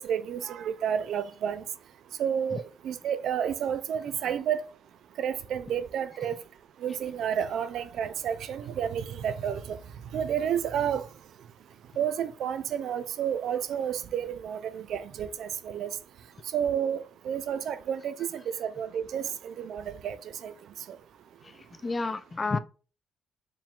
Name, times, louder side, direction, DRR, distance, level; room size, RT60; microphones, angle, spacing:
voice 1, 0.0-1.6 2.2-4.6 5.2-6.4 6.8-9.8 10.1-11.1 12.0-15.9 16.5-20.2 20.4-20.5 20.9-21.0, right 8 dB, 70° right, 0.4 m, -30 dB
voice 2, 21.4-22.6, left 3 dB, 25° left, 0.4 m, -31 dB
4.5 x 3.5 x 2.4 m
cardioid pair, 90°, 0 cm